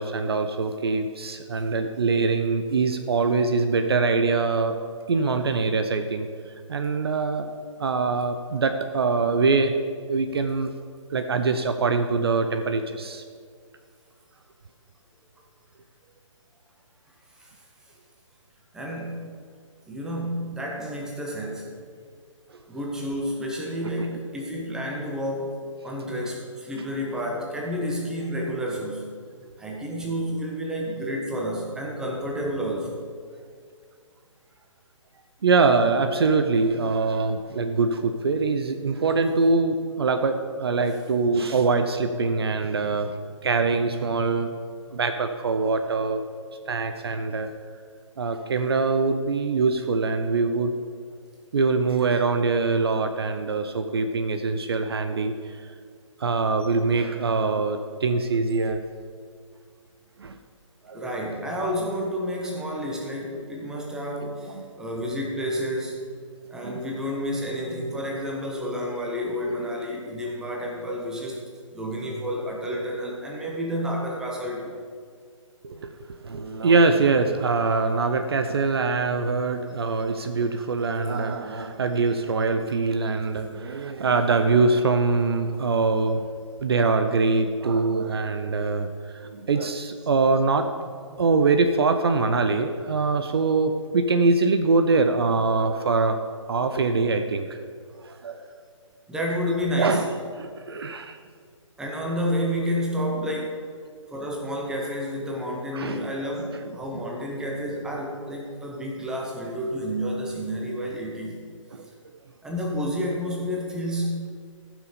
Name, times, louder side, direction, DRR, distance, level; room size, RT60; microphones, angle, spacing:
voice 1, 0.0-4.8 5.1-6.3 6.7-7.5 7.8-9.7 10.1-10.7 11.1-13.2 35.4-43.1 43.4-44.5 44.9-46.2 46.7-47.5 48.2-50.7 51.5-55.7 56.2-58.8 60.2-60.4 60.8-61.1 64.5-64.7 66.6-66.8 75.6-86.2 86.6-90.7 91.2-96.2 96.5-97.6 98.0-98.5 99.8-100.1 100.3-101.2 103.3-103.4 105.7-106.1 111.7-111.9, right 4 dB, 50° right, 7 dB, 0.6 m, -23 dB
voice 2, 18.7-19.3 19.9-21.7 22.7-25.6 25.8-29.1 29.6-33.1 60.9-66.1 66.5-71.4 71.7-74.8 90.0-90.1 99.1-100.1 101.8-103.7 104.1-111.4 112.4-114.3, equal, 5° right, -2 dB, 1.1 m, -30 dB
14.5 x 6.1 x 5.0 m, 2.1 s
figure-of-eight pair, 140°, 17 cm